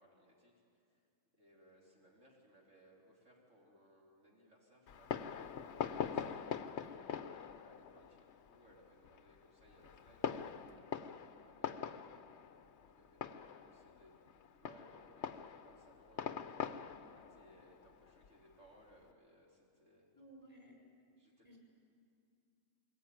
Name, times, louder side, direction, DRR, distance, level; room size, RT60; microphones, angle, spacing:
voice 1, 0.0-5.6 5.9-12.4 12.8-20.1 21.1-21.6, equal, 65° right, -3 dB, 3.9 m, -66 dB
Fireworks, 4.9-19.0, left 7 dB, 60° left, 1.0 m, -44 dB
voice 2, 6.8-7.1 12.0-12.1 20.1-20.9 21.4-21.6, equal, 25° left, 0 dB, 5.3 m, -59 dB
22.0 x 18.5 x 9.2 m, 2.4 s
omnidirectional pair, 1.4 m